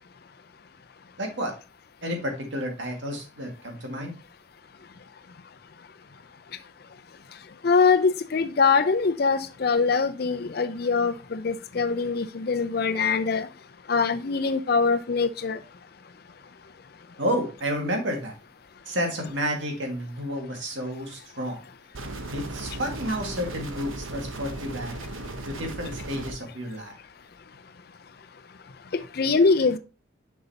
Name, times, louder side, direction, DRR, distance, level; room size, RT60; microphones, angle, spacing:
voice 1, 1.2-1.5 2.0-4.1 17.2-18.3 18.9-21.6 22.3-24.9 25.5-26.9, equal, 65° right, 1.9 m, -30 dB
voice 2, 7.6-13.5 13.9-15.6 28.9-29.8, left 4 dB, 50° left, 0.5 m, -23 dB
sound 1, 21.9-26.3, right 2 dB, 80° right, 0.9 m, -36 dB
6.7 x 5.5 x 2.8 m
head